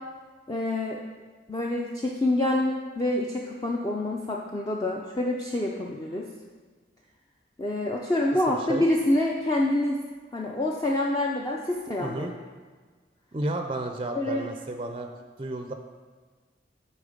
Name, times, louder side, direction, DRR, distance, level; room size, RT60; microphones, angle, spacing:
voice 1, 0.5-1.0 1.5-6.3 7.6-10.0 10.3-12.3 14.1-14.5, left 1 dB, 20° left, -2 dB, 0.5 m, -27 dB
voice 2, 8.5-8.8 12.0-12.3 13.3-15.1 15.4-15.7, right 2 dB, 30° right, 5 dB, 0.4 m, -32 dB
8.7 x 4.4 x 5.0 m, 1.5 s
head